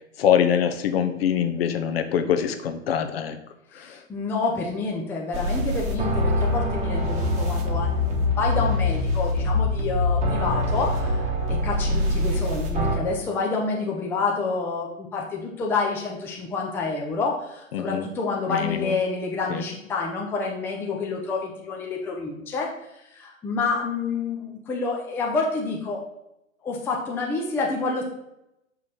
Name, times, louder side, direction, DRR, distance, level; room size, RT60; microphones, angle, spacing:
voice 1, 0.2-3.4 3.9-4.0 17.7-18.1 18.5-18.9 19.5-19.6, left 9 dB, 50° left, 8 dB, 0.9 m, -24 dB
voice 2, 3.7-26.0 26.6-28.0, left 4 dB, 5° left, -1 dB, 0.6 m, -28 dB
Psychopath Music, 5.3-13.0, left 1 dB, 15° right, 1.2 m, -24 dB
6.2 x 5.5 x 4.1 m, 0.84 s
figure-of-eight pair, 120°, 40 cm